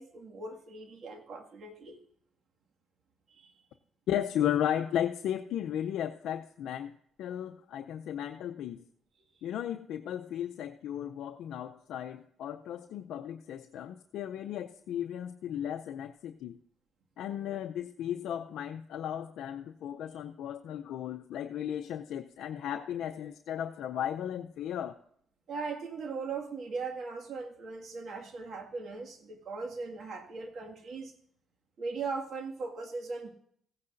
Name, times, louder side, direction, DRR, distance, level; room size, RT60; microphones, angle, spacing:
voice 1, 0.0-2.0 3.3-3.5 25.5-31.1 31.8-33.3, right 4 dB, 60° right, 3 dB, 1.9 m, -39 dB
voice 2, 4.1-6.9 7.2-8.8 9.4-16.6 17.2-25.0, left 10 dB, 80° left, 5 dB, 0.5 m, -35 dB
16.5 x 9.6 x 2.6 m, 0.65 s
cardioid pair, 90°, 0 cm